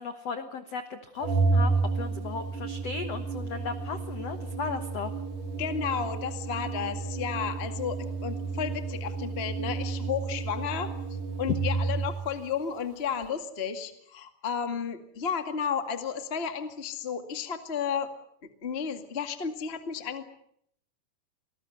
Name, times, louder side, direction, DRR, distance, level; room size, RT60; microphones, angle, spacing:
voice 1, 0.0-5.2, left 5 dB, 70° left, 9 dB, 1.5 m, -36 dB
Organ, 1.2-12.2, right 4 dB, 45° right, 3.5 m, -31 dB
voice 2, 5.6-18.1 18.6-20.2, left 7 dB, 40° left, 7 dB, 0.9 m, -33 dB
27.5 x 19.5 x 8.0 m, 0.69 s
omnidirectional pair, 4.9 m